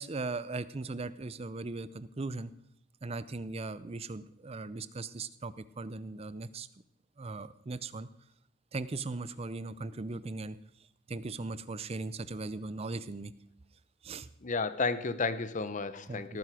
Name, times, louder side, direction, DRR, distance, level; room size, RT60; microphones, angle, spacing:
voice 1, 0.0-2.5 3.0-6.7 7.2-8.1 8.7-10.6 11.1-13.3 14.0-14.3 16.1-16.4, right 3 dB, 30° right, 16 dB, 0.5 m, -38 dB
voice 2, 14.4-16.4, left 4 dB, 35° left, 13 dB, 0.7 m, -32 dB
17.5 x 9.3 x 5.0 m, 0.77 s
head